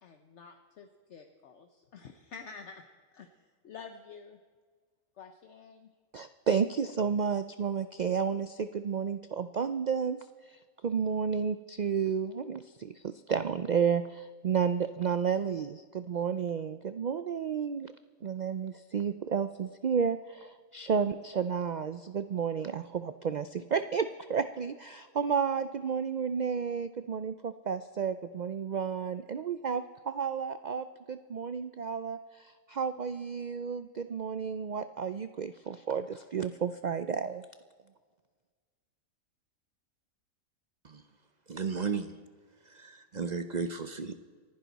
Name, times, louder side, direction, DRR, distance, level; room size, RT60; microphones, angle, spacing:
voice 1, 0.0-2.8 3.1-4.4 5.2-5.9, left 5 dB, 60° left, 5 dB, 1.1 m, -49 dB
voice 2, 6.1-10.2 10.5-17.9 18.2-37.4, right 6 dB, 80° right, 11 dB, 0.4 m, -32 dB
voice 3, 41.5-42.2 42.6-44.1, right 5 dB, 40° right, 9 dB, 0.7 m, -34 dB
28.0 x 10.5 x 4.1 m, 1.5 s
omnidirectional pair, 1.4 m